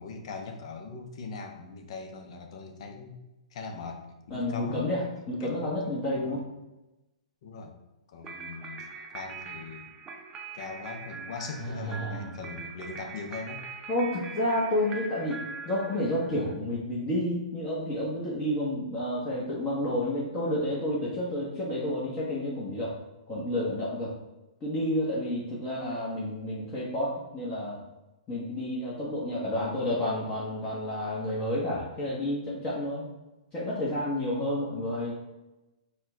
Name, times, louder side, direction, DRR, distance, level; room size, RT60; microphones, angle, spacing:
voice 1, 0.0-3.2 3.5-5.0 5.4-5.9 6.2-6.4 7.4-7.8 8.1-10.0 10.5-13.7, left 4 dB, 55° left, 5 dB, 0.7 m, -40 dB
voice 2, 4.3-6.4 11.6-12.3 13.9-22.9 23.3-24.1 24.6-27.8 28.3-33.1 33.5-35.1, left 1 dB, 25° left, -7 dB, 1.0 m, -30 dB
sound 1, 8.2-16.5, right 4 dB, 20° right, 0.6 m, -42 dB
4.2 x 2.3 x 3.8 m, 1.0 s
hypercardioid pair, 120°, 4 cm